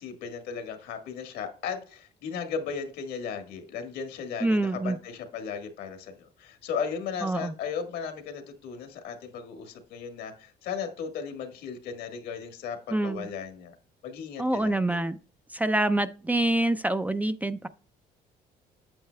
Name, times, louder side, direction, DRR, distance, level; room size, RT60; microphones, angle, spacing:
voice 1, 0.0-13.7 14.0-15.0, left 6 dB, 85° left, 1.5 m, -36 dB
voice 2, 4.4-5.0 7.2-7.5 12.9-13.3 14.4-15.2 15.5-17.7, right 1 dB, 10° right, 0.3 m, -26 dB
8.8 x 7.5 x 2.2 m
cardioid pair, 110°, 17 cm